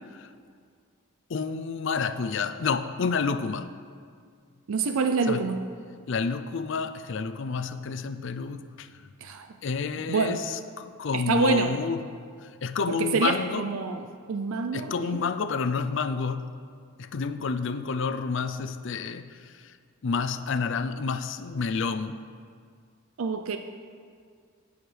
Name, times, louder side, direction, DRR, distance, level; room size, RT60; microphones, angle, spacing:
voice 1, 1.3-3.7 5.3-5.5 6.1-9.1 9.6-12.1 12.4-13.6 14.7-16.5 17.0-19.8 20.0-22.2, left 5 dB, 60° left, 10 dB, 0.4 m, -29 dB
voice 2, 4.7-5.6 9.2-9.5 10.1-10.4 11.1-11.7 12.9-15.2 23.2-23.6, right 4 dB, 80° right, 7 dB, 0.5 m, -27 dB
18.0 x 6.4 x 3.3 m, 2.1 s
head